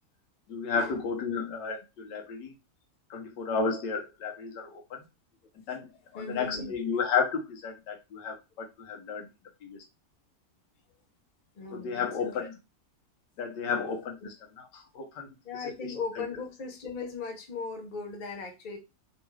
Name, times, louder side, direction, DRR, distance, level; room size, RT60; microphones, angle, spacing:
voice 1, 0.5-2.5 3.1-5.0 5.7-5.9 6.1-9.3 9.6-9.8 11.7-12.5 13.4-14.3 14.7-15.3 15.6-15.7, left 5 dB, 80° left, 2 dB, 1.5 m, -32 dB
voice 2, 6.1-6.8 11.5-12.5 13.6-13.8 14.2-14.3 15.4-18.8, left 4 dB, 55° left, 3 dB, 0.5 m, -38 dB
3.6 x 2.3 x 3.1 m, 0.26 s
omnidirectional pair, 1.9 m